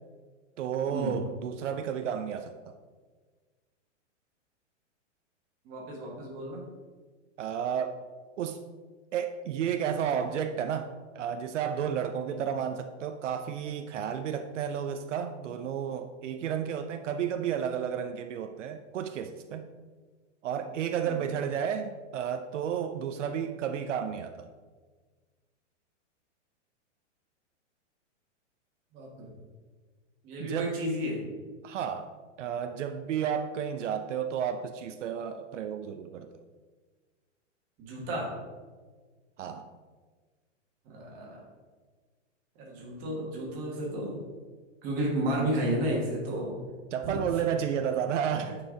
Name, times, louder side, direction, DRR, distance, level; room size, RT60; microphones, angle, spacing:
voice 1, 0.6-2.7 7.4-8.0 8.4-8.6 9.1-19.7 20.4-24.5 30.4-30.8 31.6-32.1 32.4-36.3 39.4-39.7 46.9-48.6, right 8 dB, 75° right, 8 dB, 0.6 m, -32 dB
voice 2, 5.6-6.6 12.2-12.4 21.0-21.2 28.9-29.3 30.2-31.2 37.8-38.3 40.8-41.4 42.6-44.2 44.8-46.5, right 1 dB, 20° right, -3 dB, 1.5 m, -32 dB
8.6 x 4.7 x 3.7 m, 1.4 s
hypercardioid pair, 170°, 37 cm